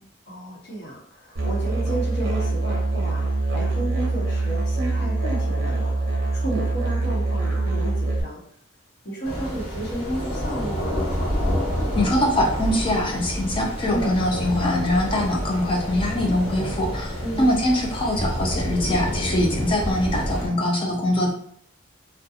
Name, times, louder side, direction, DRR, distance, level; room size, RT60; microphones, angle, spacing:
voice 1, 0.3-6.0 6.3-8.4 9.0-11.0 13.9-14.2 17.2-17.5, right 1 dB, 55° left, -5 dB, 1.0 m, -32 dB
Musical instrument, 1.4-8.2, right 2 dB, 55° right, 0.7 m, -24 dB
sound 1, 9.2-20.5, equal, 75° left, 1.2 m, -28 dB
voice 2, 11.9-21.3, left 1 dB, 25° left, 0 dB, 0.4 m, -23 dB
2.7 x 2.2 x 2.4 m, 0.64 s
head